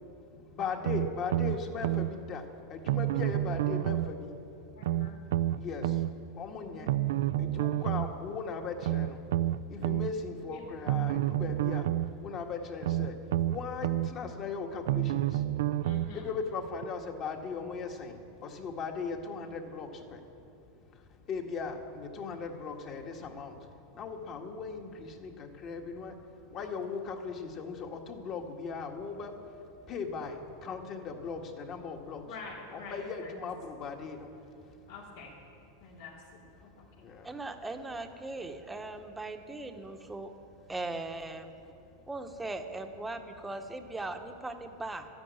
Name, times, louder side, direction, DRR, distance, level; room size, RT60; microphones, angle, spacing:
voice 1, 0.5-2.4 2.7-4.3 5.6-5.9 6.4-6.9 7.4-9.2 9.7-11.9 12.2-13.1 13.5-15.3 16.1-20.2 21.3-23.5 24.0-26.1 26.5-29.3 29.9-32.2 32.7-34.3 37.0-37.3, left 5 dB, 35° left, 3 dB, 1.8 m, -38 dB
sound 1, 0.9-2.1 2.9-4.1 4.8-6.1 6.9-8.1 8.8-10.1 10.9-12.1 12.8-14.1 14.9-16.1 16.8-16.9, right 14 dB, 75° right, 0.4 m, -29 dB
voice 2, 4.8-5.2 10.4-10.8 15.8-16.3 32.2-33.3 34.8-35.3 35.8-36.9, left 4 dB, 85° left, -3 dB, 3.4 m, -47 dB
voice 3, 37.2-40.3 40.7-41.5 42.1-45.1, right 2 dB, 10° right, 5 dB, 1.1 m, -39 dB
12.5 x 10.5 x 9.6 m, 2.6 s
supercardioid pair, 135°, 0 cm